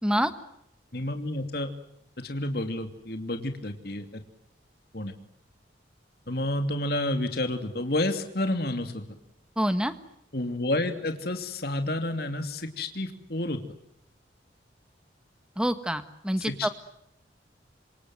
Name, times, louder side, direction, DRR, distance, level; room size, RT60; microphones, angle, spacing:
voice 1, 0.0-0.3 9.6-9.9 15.6-16.7, equal, 5° right, 11 dB, 1.6 m, -26 dB
voice 2, 0.9-1.7 2.2-4.2 4.9-5.1 6.3-9.0 10.3-13.6 16.4-16.7, left 1 dB, 55° left, 7 dB, 2.8 m, -30 dB
27.5 x 26.0 x 7.9 m, 0.75 s
head